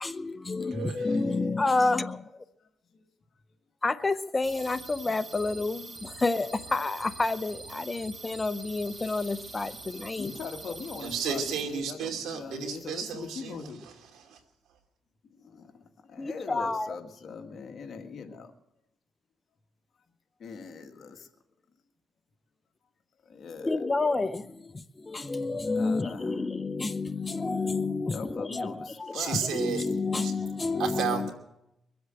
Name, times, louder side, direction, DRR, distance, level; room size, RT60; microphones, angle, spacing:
voice 1, 0.0-2.4 3.8-10.3 16.2-16.9 23.6-31.3, left 3 dB, 25° left, 0.7 m, -29 dB
voice 2, 0.7-1.5 11.0-14.4 29.1-29.8 30.2-30.3 30.8-31.3, right 7 dB, 80° right, 2.7 m, -33 dB
sound 1, 4.4-11.6, right 3 dB, 30° right, 6.0 m, -44 dB
voice 3, 10.2-13.9 15.3-18.5 20.4-21.3 23.2-23.9 25.7-26.4 28.1-29.4, left 5 dB, 55° left, 1.9 m, -41 dB
23.0 x 8.0 x 7.7 m
cardioid pair, 90°, 0 cm